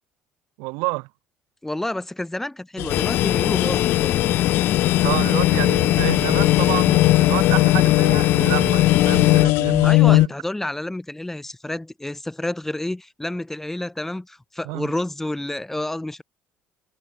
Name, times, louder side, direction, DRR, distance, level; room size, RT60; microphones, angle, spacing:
voice 1, 0.6-1.1 5.0-10.3 14.6-14.9, right 29 dB, 85° right, 4.5 m, -29 dB
voice 2, 1.6-4.3 9.8-16.2, left 1 dB, 10° left, 7.8 m, -29 dB
sound 1, 2.8-10.3, left 21 dB, 80° left, 1.8 m, -20 dB
sound 2, 2.9-9.5, left 13 dB, 60° left, 1.3 m, -21 dB
supercardioid pair, 100°, 4 cm